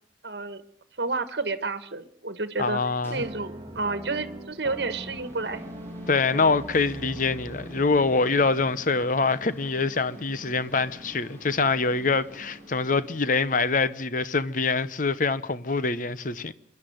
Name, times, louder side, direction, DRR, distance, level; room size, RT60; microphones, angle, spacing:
voice 1, 0.2-0.6 1.0-2.8 3.1-5.6, right 3 dB, 60° right, 1.5 m, -30 dB
voice 2, 2.6-3.2 6.1-16.5, left 4 dB, 45° left, 0.9 m, -25 dB
sound 1, 2.6-14.3, equal, 10° left, 6.4 m, -48 dB
sound 2, 3.2-8.7, right 1 dB, 20° right, 1.5 m, -41 dB
26.0 x 11.0 x 9.2 m
head